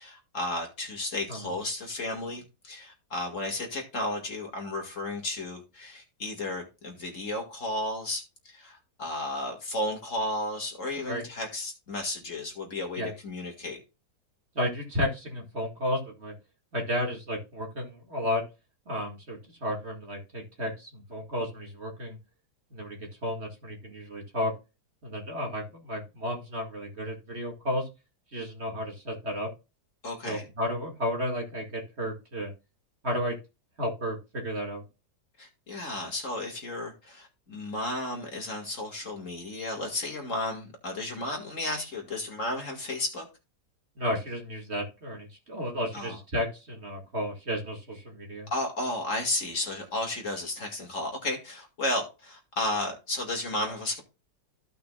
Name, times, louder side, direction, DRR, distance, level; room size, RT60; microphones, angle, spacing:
voice 1, 0.0-13.8 30.0-30.5 35.4-43.3 45.9-46.2 48.5-54.0, left 1 dB, 50° left, 2.4 m, -33 dB
voice 2, 14.5-16.3 16.7-18.4 18.9-22.2 22.7-24.5 25.0-27.9 28.3-29.5 30.2-32.5 33.0-33.4 33.8-34.8 44.0-48.5, equal, 40° right, 2.3 m, -32 dB
15.0 x 5.8 x 2.4 m
omnidirectional pair, 1.7 m